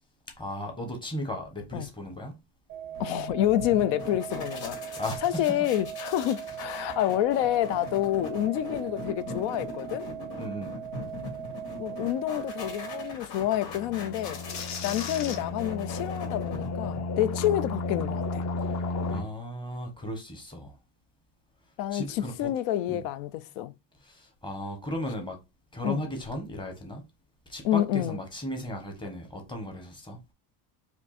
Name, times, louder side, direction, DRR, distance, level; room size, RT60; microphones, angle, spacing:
voice 1, 0.4-2.4 5.0-5.4 10.4-10.8 19.1-20.7 21.9-22.5 22.9-23.0 24.0-25.4 25.7-27.0 27.5-30.2, left 1 dB, 10° left, 1.1 m, -36 dB
sound 1, 2.7-13.1, right 9 dB, 30° right, 0.5 m, -39 dB
sound 2, 2.9-17.3, left 3 dB, 85° left, 2.1 m, -41 dB
voice 2, 3.0-10.0 11.8-14.4 14.8-18.4 21.8-23.7 25.8-26.1 27.6-28.2, left 13 dB, 65° left, 0.5 m, -28 dB
sound 3, 13.6-19.2, left 3 dB, 40° left, 0.9 m, -33 dB
4.4 x 2.7 x 4.2 m
cardioid pair, 160°, 45 cm